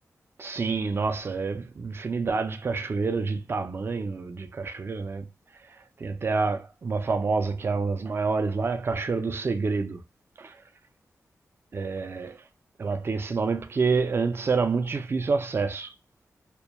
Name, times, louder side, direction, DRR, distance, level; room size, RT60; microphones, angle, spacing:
voice 1, 0.4-5.3 6.0-10.0 10.4-10.6 11.7-12.4 12.8-15.9, right 4 dB, 45° right, 0.3 m, -28 dB
2.2 x 2.1 x 2.8 m
cardioid pair, 60°, 6 cm